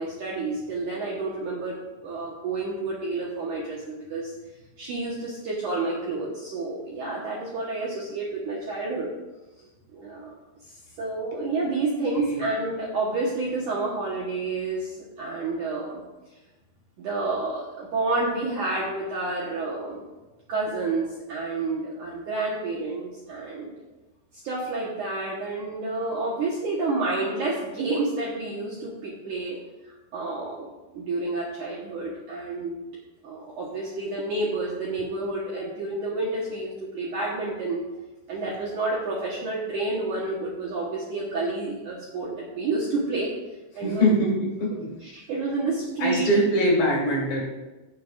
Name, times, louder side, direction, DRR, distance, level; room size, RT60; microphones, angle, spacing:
voice 1, 0.0-4.3 4.8-9.1 9.9-10.3 10.7-16.0 17.0-20.0 20.5-23.7 24.4-29.6 29.8-30.7 30.9-32.7 33.2-37.8 38.3-43.3 43.7-44.1 45.0-46.3, right 3 dB, 75° right, -5 dB, 1.8 m, -29 dB
voice 2, 12.1-12.5 43.8-44.9 46.0-47.4, equal, 55° left, -3 dB, 3.6 m, -23 dB
17.0 x 6.6 x 2.5 m, 1.1 s
omnidirectional pair, 5.4 m